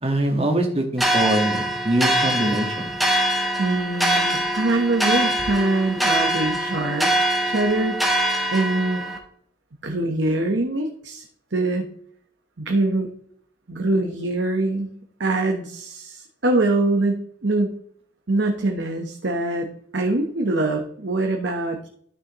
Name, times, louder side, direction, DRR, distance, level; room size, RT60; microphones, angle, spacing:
voice 1, 0.0-2.9, right 1 dB, 35° right, 3 dB, 1.6 m, -23 dB
sound 1, 1.0-9.2, right 1 dB, ahead, 1.2 m, -23 dB
voice 2, 3.6-7.1 7.4-8.0 8.5-9.0 9.8-11.2 11.5-11.8 12.6-13.1 13.7-14.9 15.2-17.8 18.3-19.7 19.9-21.9, right 2 dB, 85° right, 3 dB, 1.1 m, -23 dB
13.0 x 6.3 x 3.0 m, 0.64 s
head